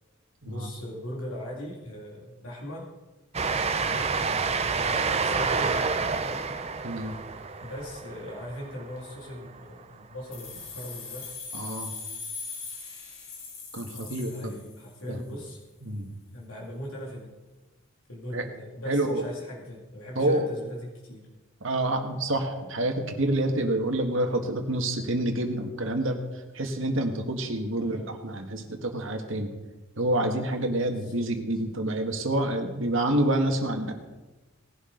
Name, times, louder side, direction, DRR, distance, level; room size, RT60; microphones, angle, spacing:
voice 1, 0.4-2.9 3.8-6.5 7.6-11.3 13.9-15.6 16.3-17.4 18.1-21.3 27.7-28.2 30.8-31.3, equal, 90° left, -2 dB, 2.4 m, -40 dB
Train, 3.3-9.5, right 5 dB, 30° right, 0.6 m, -28 dB
voice 2, 6.8-7.2 11.5-11.9 13.7-14.5 15.1-15.2 15.8-16.1 18.3-18.5 18.9-19.2 20.2-20.5 21.6-26.2 26.5-29.5 30.0-33.9, right 1 dB, 65° right, 4 dB, 1.8 m, -27 dB
sound 1, 10.3-15.1, left 5 dB, 65° left, 3.7 m, -40 dB
18.5 x 11.5 x 3.9 m, 1.2 s
head